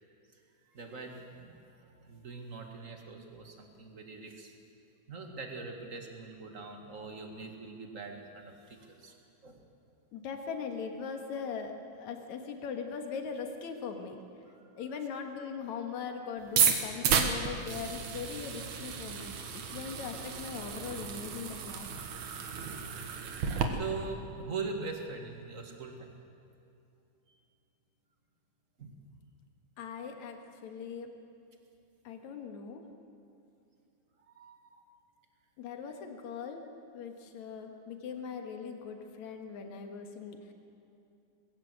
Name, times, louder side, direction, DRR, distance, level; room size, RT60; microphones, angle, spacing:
voice 1, 0.3-1.6 1.9-4.5 5.1-9.2 9.4-9.6 14.5-14.6 23.7-26.1 28.8-28.9 34.3-34.8, right 4 dB, 30° right, 3 dB, 1.8 m, -42 dB
voice 2, 10.1-14.2 14.8-21.9 29.8-31.1 32.0-32.8 34.9-35.0 35.6-36.7 36.9-40.5, left 6 dB, 65° left, 5 dB, 2.8 m, -40 dB
sound 1, 16.4-23.7, right 7 dB, 70° right, 2.8 m, -32 dB
21.5 x 17.0 x 7.9 m, 2.7 s
omnidirectional pair, 3.7 m